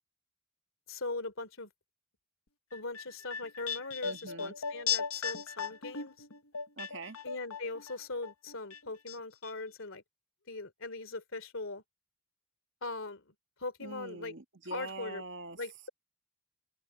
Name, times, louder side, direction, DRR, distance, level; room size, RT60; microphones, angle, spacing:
voice 1, 0.9-1.7 2.7-6.2 7.2-10.0 10.5-11.8 12.8-13.3 13.6-14.3 14.7-15.2 15.6-15.9, left 3 dB, 65° left, 3.3 m, -40 dB
sound 1, 2.7-7.9 8.2-9.2 9.4-9.5, left 7 dB, 85° left, 1.3 m, -37 dB
voice 2, 4.0-4.5 6.8-7.2 13.8-15.6, right 3 dB, 60° right, 1.7 m, -44 dB
open air
head